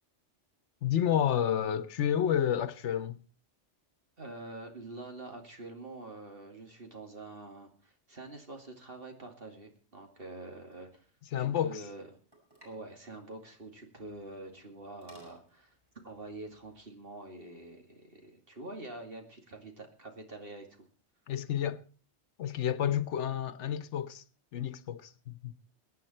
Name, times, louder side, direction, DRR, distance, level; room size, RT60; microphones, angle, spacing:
voice 1, 0.8-3.2 11.3-11.8 21.3-21.8 22.4-24.2 24.5-25.5, left 9 dB, 80° left, 1.1 m, -30 dB
voice 2, 4.2-11.1 11.4-12.1 12.6-15.8 16.0-20.9, right 2 dB, 55° right, 2.7 m, -46 dB
sound 1, 10.6-17.0, right 1 dB, 20° right, 5.8 m, -63 dB
22.5 x 9.4 x 4.4 m
omnidirectional pair, 1.2 m